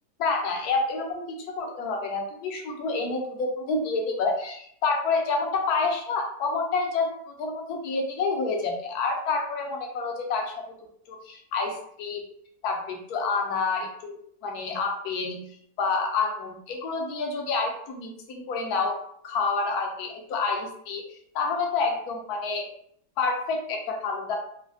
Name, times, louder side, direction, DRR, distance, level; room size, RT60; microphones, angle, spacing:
voice 1, 0.2-10.7 11.1-12.2 12.6-14.2 14.4-15.4 15.8-19.0 19.2-22.7 23.2-24.4, left 4 dB, 75° left, 2 dB, 1.1 m, -28 dB
3.1 x 2.1 x 2.5 m, 0.67 s
omnidirectional pair, 1.7 m